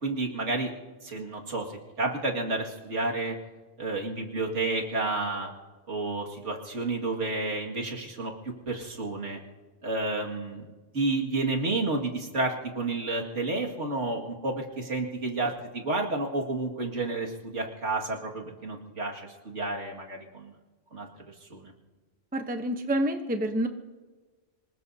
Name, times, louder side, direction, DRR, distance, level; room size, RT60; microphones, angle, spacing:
voice 1, 0.0-0.7 1.0-3.4 3.8-5.5 5.9-8.3 8.7-9.4 9.8-10.7 10.9-20.5 20.9-21.7, right 2 dB, 65° right, 0 dB, 2.4 m, -31 dB
voice 2, 22.3-23.7, right 1 dB, 10° right, 6 dB, 0.7 m, -28 dB
26.0 x 20.0 x 2.8 m, 1.3 s
omnidirectional pair, 1.3 m